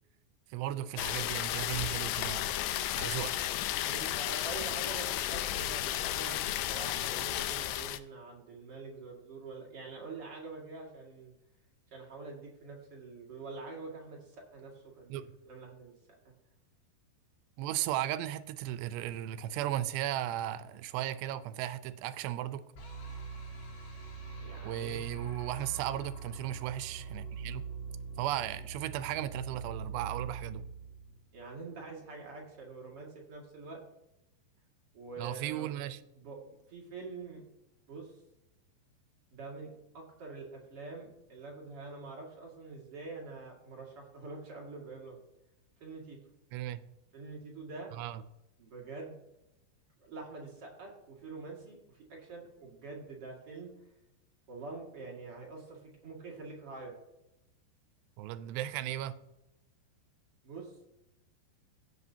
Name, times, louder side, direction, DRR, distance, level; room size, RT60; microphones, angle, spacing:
voice 1, 0.5-2.5 2.9-3.4 15.1-15.3 17.6-22.6 24.6-27.6 28.2-30.6 35.2-36.0 46.5-46.8 47.9-48.2 58.2-59.1, right 13 dB, 85° right, 13 dB, 2.7 m, -36 dB
sound 1, 1.0-8.0, left 13 dB, 80° left, 2.4 m, -33 dB
voice 2, 3.9-11.3 11.9-15.9 16.2-16.3 24.4-25.0 31.3-33.8 34.9-35.7 36.1-37.4 37.9-38.2 39.3-45.2 45.8-46.2 47.1-47.9 48.6-49.2 50.0-53.7 54.5-56.9 60.4-60.7, right 3 dB, 45° right, -2 dB, 2.2 m, -45 dB
sound 2, 22.8-31.9, right 5 dB, 65° left, 4.2 m, -43 dB
15.5 x 7.8 x 2.8 m, 0.90 s
omnidirectional pair, 4.9 m